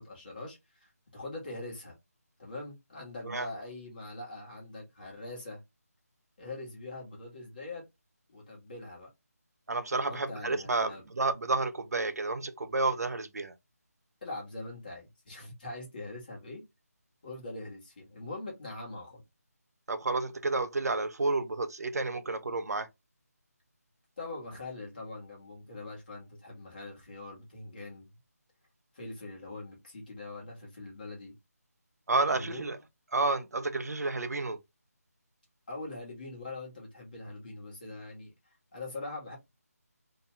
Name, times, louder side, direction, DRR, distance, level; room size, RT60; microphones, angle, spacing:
voice 1, 0.0-2.0 2.4-5.6 6.4-7.8 8.3-9.1 10.0-11.0 14.2-16.6 17.2-19.2 24.2-28.1 28.9-31.3 32.2-32.8 35.7-38.3 38.7-39.4, left 2 dB, 30° left, 1.2 m, -42 dB
voice 2, 9.7-13.5 19.9-22.9 32.1-32.8 33.1-34.6, right 3 dB, 75° right, 0.5 m, -30 dB
2.7 x 2.2 x 2.9 m
figure-of-eight pair, 175°, 9 cm